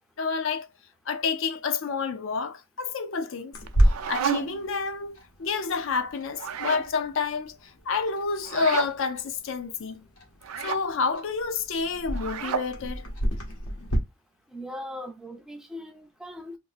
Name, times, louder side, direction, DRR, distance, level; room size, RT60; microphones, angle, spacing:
voice 1, 0.2-0.7 1.1-3.6 3.8-10.1 10.6-13.1, left 5 dB, 65° left, 0.4 m, -29 dB
Clock, 3.5-14.0, right 1 dB, 85° left, 1.2 m, -31 dB
sound 1, 3.6-4.7 6.3-6.9 8.4-8.9 10.4-10.8 12.1-12.7, right 8 dB, 85° right, 0.4 m, -31 dB
voice 2, 14.5-16.6, left 1 dB, ahead, 0.4 m, -39 dB
2.6 x 2.5 x 4.0 m
head